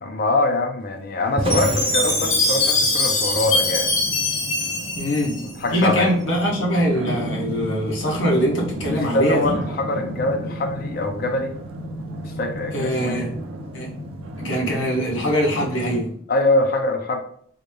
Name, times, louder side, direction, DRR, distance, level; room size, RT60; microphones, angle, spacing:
voice 1, 0.0-3.9 5.6-6.1 8.9-11.6 12.2-13.3 16.3-17.2, left 2 dB, 45° left, 4 dB, 0.4 m, -23 dB
Thunder, 1.2-15.4, right 2 dB, 30° right, 0.3 m, -36 dB
Chime, 1.5-5.8, left 2 dB, 90° left, 1.5 m, -22 dB
sound 1, 3.4-16.0, right 1 dB, 85° right, 0.5 m, -34 dB
voice 2, 4.9-5.4 5.7-9.5 12.7-13.3 13.7-13.9 14.4-16.1, equal, 75° left, -2 dB, 1.0 m, -22 dB
3.8 x 2.2 x 3.2 m, 0.63 s
head